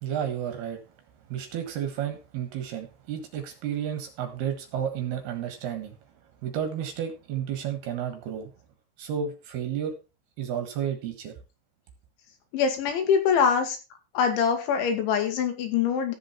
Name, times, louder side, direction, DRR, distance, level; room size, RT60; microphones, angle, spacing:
voice 1, 0.0-0.8 1.3-5.9 6.4-8.5 9.0-9.9 10.4-11.3, right 9 dB, 65° right, 3.0 m, -32 dB
voice 2, 12.5-13.8 14.2-16.1, left 7 dB, 70° left, 4.1 m, -24 dB
14.0 x 7.6 x 4.3 m
omnidirectional pair, 5.7 m